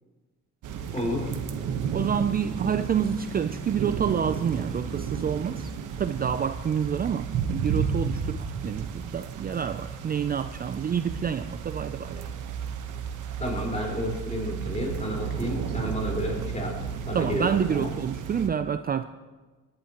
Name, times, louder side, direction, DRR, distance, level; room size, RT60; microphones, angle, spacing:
sound 1, 0.6-18.5, right 7 dB, 80° right, 1.2 m, -33 dB
voice 1, 0.9-1.3 13.4-17.9, equal, 25° left, -2 dB, 4.5 m, -31 dB
voice 2, 1.9-5.7 6.0-12.3 17.1-19.0, right 7 dB, 30° right, 11 dB, 0.4 m, -28 dB
19.5 x 11.5 x 3.0 m, 1.3 s
cardioid pair, 90°, 30 cm